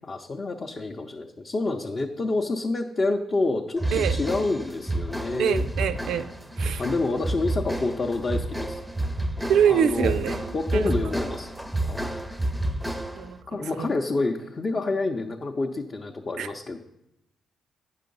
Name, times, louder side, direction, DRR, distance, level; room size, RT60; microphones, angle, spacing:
voice 1, 0.0-5.7 6.8-8.8 9.6-10.2 10.5-11.5 11.8-12.2 13.5-16.8, left 3 dB, 35° left, 1 dB, 0.6 m, -28 dB
sound 1, 3.8-13.3, right 1 dB, ahead, 0.6 m, -30 dB
voice 2, 5.4-6.3 6.6-6.8 9.5-10.4 10.7-10.9 13.1-13.6 16.4-16.5, right 8 dB, 75° right, 12 dB, 0.4 m, -24 dB
9.3 x 5.6 x 5.3 m, 0.86 s
cardioid pair, 90°, 0 cm